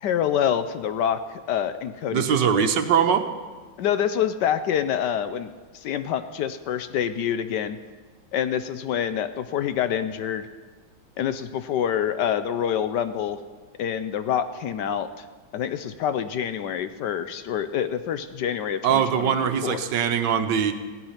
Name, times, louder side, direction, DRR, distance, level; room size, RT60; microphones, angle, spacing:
voice 1, 0.0-2.2 2.5-2.7 3.8-7.8 8.3-10.5 11.2-13.4 13.8-15.2 15.5-19.9, left 9 dB, 70° left, 11 dB, 1.2 m, -26 dB
voice 2, 2.1-3.3 18.8-20.7, right 8 dB, 70° right, 8 dB, 1.5 m, -22 dB
16.5 x 12.0 x 5.7 m, 1.4 s
omnidirectional pair, 2.1 m